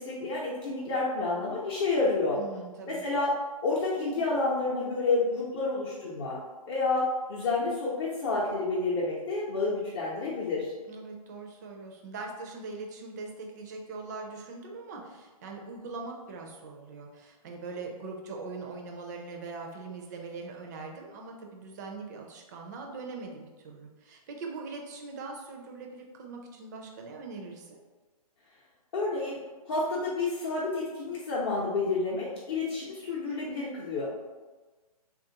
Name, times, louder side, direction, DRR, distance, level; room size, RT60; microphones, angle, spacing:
voice 1, 0.0-2.4 2.9-3.3 3.6-6.4 6.7-10.7 28.9-29.4 29.7-34.1, left 3 dB, 40° left, -7 dB, 0.7 m, -29 dB
voice 2, 2.3-3.0 10.9-27.8, right 3 dB, 30° right, 1 dB, 0.4 m, -41 dB
3.4 x 2.4 x 2.8 m, 1.3 s
hypercardioid pair, 140°, 20 cm